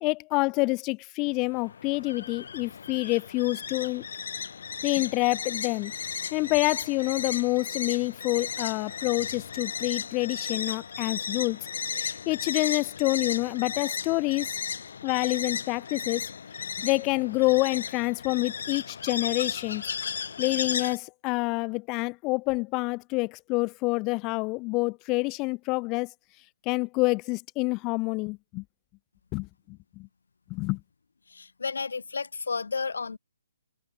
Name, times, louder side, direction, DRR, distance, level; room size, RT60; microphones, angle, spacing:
voice 1, 0.0-4.0 4.8-5.9 6.3-11.6 12.0-14.5 15.0-16.3 16.8-19.8 20.4-26.1 26.7-28.6 29.3-30.1 30.5-30.8, left 25 dB, 20° left, 0.3 m, -27 dB
sound 1, 1.2-21.0, left 6 dB, 65° left, 0.7 m, -35 dB
voice 2, 31.3-33.2, left 4 dB, 85° left, 1.4 m, -32 dB
hypercardioid pair, 160°, 0 cm